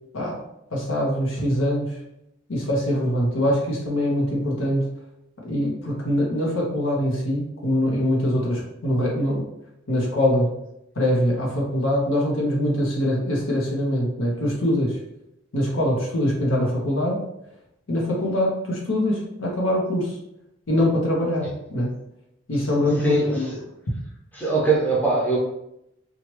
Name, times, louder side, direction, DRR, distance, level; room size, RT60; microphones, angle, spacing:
voice 1, 0.7-2.0 2.5-4.9 5.4-9.4 9.9-10.5 10.9-15.0 15.5-17.2 17.9-20.2 20.7-21.9 22.5-23.5, equal, 80° left, -2 dB, 0.9 m, -23 dB
voice 2, 22.8-23.6 24.3-25.4, right 2 dB, 10° left, -5 dB, 0.8 m, -22 dB
2.9 x 2.4 x 3.1 m, 0.82 s
head